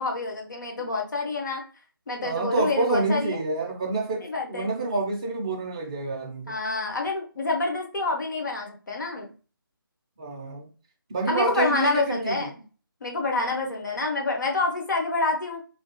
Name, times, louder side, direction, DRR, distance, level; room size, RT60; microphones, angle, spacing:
voice 1, 0.0-1.6 2.1-3.4 4.2-4.7 6.5-9.3 11.3-12.6 13.0-15.6, left 3 dB, 50° left, 1 dB, 0.9 m, -27 dB
voice 2, 2.2-6.5 10.2-10.7 11.1-12.5, right 3 dB, 15° right, 0 dB, 0.4 m, -28 dB
3.3 x 2.4 x 2.7 m, 0.36 s
figure-of-eight pair, 155°, 12 cm